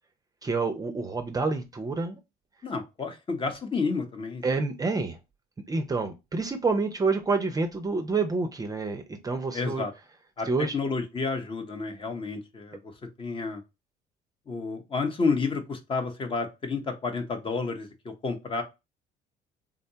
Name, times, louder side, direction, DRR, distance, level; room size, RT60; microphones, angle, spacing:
voice 1, 0.4-2.2 4.4-5.2 5.7-9.8 10.5-10.7, right 3 dB, 20° right, 6 dB, 0.5 m, -28 dB
voice 2, 2.6-4.4 9.5-9.9 10.4-10.5 10.7-12.9 13.2-13.6 14.5-18.6, left 4 dB, 30° left, 6 dB, 0.8 m, -30 dB
3.6 x 2.2 x 2.7 m, 0.24 s
cardioid pair, 110°, 17 cm